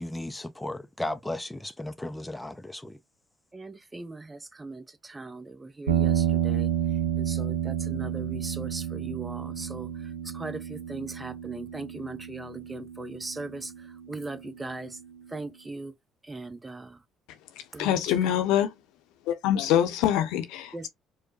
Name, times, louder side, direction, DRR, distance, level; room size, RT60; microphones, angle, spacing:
voice 1, 0.0-3.0, left 1 dB, 10° left, 0.5 m, -35 dB
voice 2, 3.5-6.7 7.2-9.9 10.2-13.7 14.1-15.0 15.3-15.9 16.2-17.0 17.7-18.4 20.7-20.9, right 3 dB, 20° right, 0.8 m, -39 dB
sound 1, 5.9-14.2, right 10 dB, 85° right, 0.5 m, -30 dB
voice 3, 17.8-18.7 19.3-20.9, left 10 dB, 70° left, 0.8 m, -24 dB
4.7 x 2.2 x 2.8 m
hypercardioid pair, 55°, 0 cm